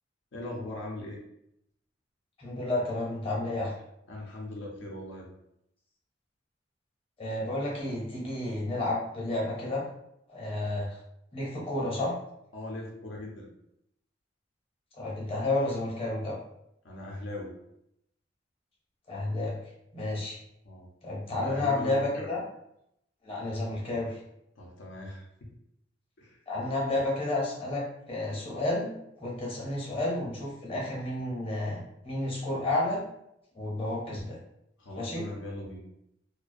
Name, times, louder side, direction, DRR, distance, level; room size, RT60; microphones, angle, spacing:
voice 1, 0.3-1.2 4.1-5.3 12.5-13.5 16.8-17.5 20.6-20.9 21.3-22.3 24.6-25.3 26.2-26.4 34.8-35.8, left 1 dB, 85° left, -2 dB, 0.5 m, -39 dB
voice 2, 2.4-3.7 7.2-9.8 10.3-11.0 11.3-12.1 14.9-16.4 19.1-19.6 19.9-20.4 21.0-22.4 23.2-24.2 26.5-28.9 29.2-33.0 33.5-34.4 35.0-35.2, left 2 dB, 30° left, -4 dB, 0.7 m, -31 dB
2.3 x 2.1 x 2.5 m, 0.77 s
head